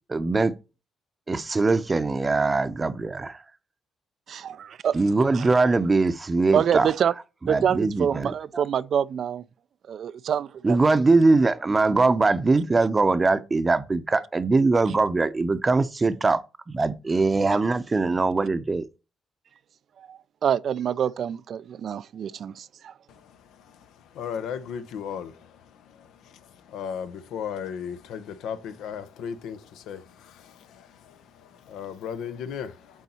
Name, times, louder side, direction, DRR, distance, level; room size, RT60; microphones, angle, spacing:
voice 1, 0.1-0.5 1.3-3.4 4.9-6.9 7.4-8.6 10.6-16.4 16.7-18.8, right 3 dB, 25° right, 0.7 m, -22 dB
voice 2, 4.3-5.0 5.3-5.5 6.5-7.1 7.5-9.4 9.9-10.8 20.0-22.9, right 8 dB, 60° right, 0.4 m, -26 dB
voice 3, 23.1-33.0, left 7 dB, 85° left, 0.8 m, -37 dB
8.3 x 4.0 x 4.2 m
cardioid pair, 90°, 0 cm